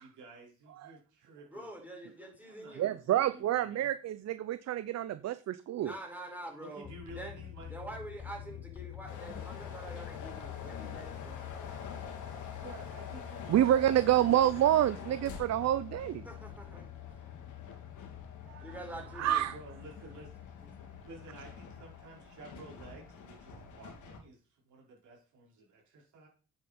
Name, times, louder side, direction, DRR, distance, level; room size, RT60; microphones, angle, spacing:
voice 1, 0.0-1.7 2.4-3.9 6.6-7.8 12.6-14.7 19.2-20.4 21.0-26.3, right 3 dB, 75° right, -2 dB, 4.8 m, -52 dB
voice 2, 1.5-2.9 5.8-7.4 7.7-11.7 16.2-16.8 18.6-19.5, right 1 dB, 5° right, -1 dB, 5.3 m, -46 dB
voice 3, 2.8-5.9 13.5-16.2 18.5-18.6 19.2-19.5, right 12 dB, 60° right, 14 dB, 0.6 m, -28 dB
sound 1, 6.8-22.0, left 12 dB, 45° left, 0.7 m, -47 dB
sound 2, 9.1-24.2, left 5 dB, 80° left, 2.7 m, -48 dB
9.5 x 8.8 x 4.3 m, 0.38 s
cardioid pair, 90°, 30 cm